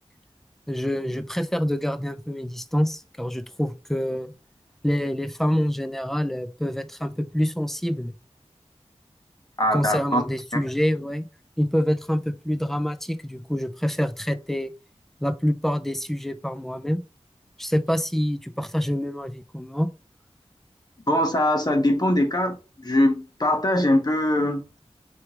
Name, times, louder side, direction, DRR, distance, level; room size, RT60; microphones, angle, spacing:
voice 1, 0.7-4.3 4.8-8.1 9.7-11.3 11.6-14.7 15.2-17.0 17.6-19.9, equal, 5° left, 0.5 m, -26 dB
voice 2, 9.6-10.2 21.1-22.6 22.8-24.6, left 1 dB, 35° left, 1.3 m, -21 dB
4.6 x 3.3 x 3.1 m
wide cardioid pair, 65°, 11 cm